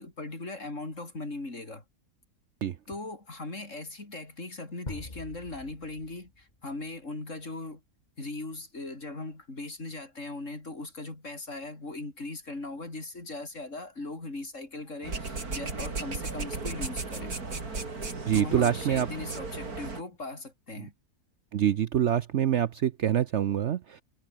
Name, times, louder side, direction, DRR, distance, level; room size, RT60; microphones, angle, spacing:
voice 1, 0.0-1.8 2.9-7.8 8.2-17.4 18.3-20.9, left 2 dB, 55° left, 4.9 m, -39 dB
sound 1, 4.9-6.8, left 2 dB, 30° left, 2.6 m, -44 dB
sound 2, 15.0-20.0, right 3 dB, 75° right, 4.0 m, -35 dB
voice 2, 18.3-19.1 21.5-24.0, right 10 dB, 60° right, 0.9 m, -25 dB
omnidirectional pair, 1.6 m